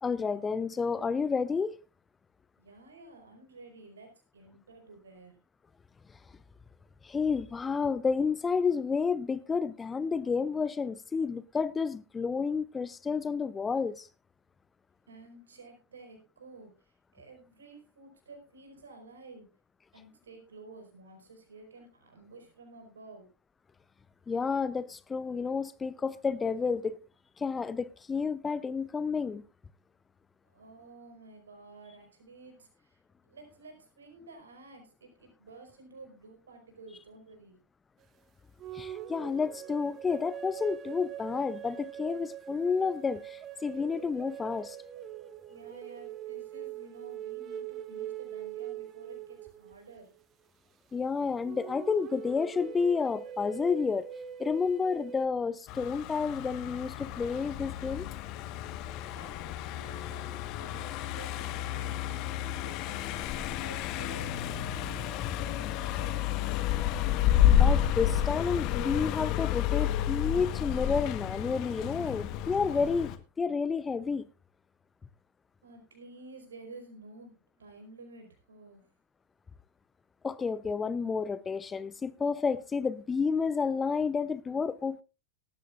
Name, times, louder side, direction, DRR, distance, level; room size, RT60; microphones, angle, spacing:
voice 1, 0.0-1.8 7.0-14.1 24.3-27.0 27.4-29.4 38.7-44.8 50.9-54.1 54.4-58.1 67.5-74.2 80.2-85.0, left 5 dB, 15° left, 0.5 m, -30 dB
voice 2, 2.6-5.4 15.1-19.5 19.9-23.3 30.4-37.6 45.5-50.1 59.1-60.3 60.6-66.7 75.6-78.9, right 3 dB, 70° right, 4.8 m, -52 dB
sound 1, 38.6-50.0 51.4-55.3, right 10 dB, 30° right, 1.0 m, -42 dB
Car passing by, 55.7-73.2, left 11 dB, 40° left, 1.2 m, -30 dB
18.0 x 13.5 x 2.5 m
figure-of-eight pair, 90°, 0 cm